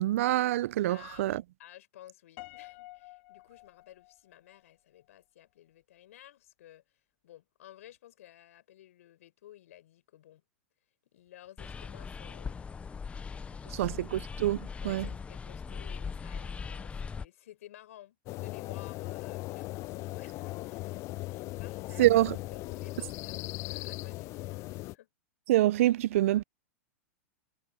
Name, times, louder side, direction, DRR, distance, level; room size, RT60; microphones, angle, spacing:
voice 1, 0.0-1.4 13.8-14.6 14.8-15.1 22.0-22.3 25.5-26.4, right 15 dB, 70° right, 0.7 m, -25 dB
voice 2, 0.9-10.4 11.0-12.7 13.5-14.0 14.8-22.2 22.5-25.1, left 13 dB, 75° left, 7.2 m, -54 dB
Piano, 2.4-4.6, left 22 dB, 55° left, 3.3 m, -50 dB
sound 1, 11.6-17.3, left 5 dB, 15° left, 0.8 m, -40 dB
sound 2, 18.3-24.9, left 20 dB, 40° left, 0.4 m, -38 dB
hypercardioid pair, 120°, 8 cm